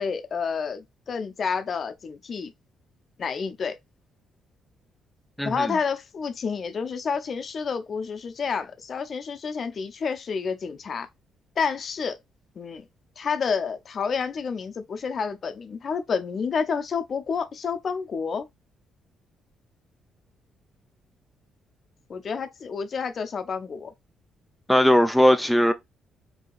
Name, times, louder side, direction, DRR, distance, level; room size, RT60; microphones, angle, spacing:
voice 1, 0.0-2.5 3.2-3.8 5.4-11.1 11.6-12.2 12.6-12.8 13.2-18.5 22.1-23.9, left 5 dB, 50° left, 0.6 m, -29 dB
voice 2, 5.4-5.7 24.7-25.7, equal, ahead, 0.3 m, -19 dB
4.6 x 2.8 x 2.5 m
cardioid pair, 90°, 0 cm